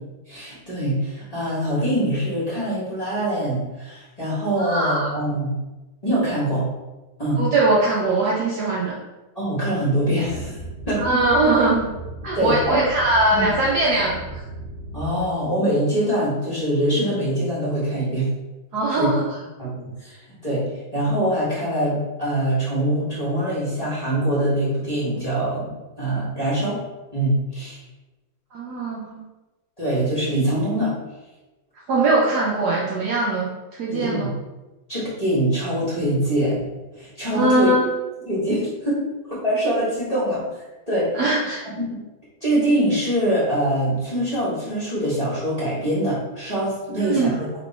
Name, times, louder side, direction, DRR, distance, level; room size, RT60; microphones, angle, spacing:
voice 1, 0.3-5.5 6.0-6.7 7.2-7.4 9.3-10.6 10.9-11.0 12.4-12.8 13.3-13.5 14.9-18.3 18.9-19.1 19.6-20.6 20.9-25.7 26.0-26.8 27.1-27.8 29.8-30.9 33.9-34.3 34.9-37.7 38.3-39.0 39.4-40.4 40.9-41.2 41.8-42.0 42.4-47.3, right 1 dB, 25° left, -9 dB, 1.1 m, -23 dB
voice 2, 4.6-5.1 7.4-9.0 11.0-11.8 12.2-14.4 18.7-19.2 28.5-29.2 31.9-34.3 37.3-37.9 41.1-41.6 47.0-47.3, right 2 dB, 70° right, -4 dB, 1.0 m, -21 dB
sound 1, 10.2-15.2, right 1 dB, 85° left, 0.4 m, -36 dB
3.2 x 3.0 x 4.1 m, 1.1 s
omnidirectional pair, 2.1 m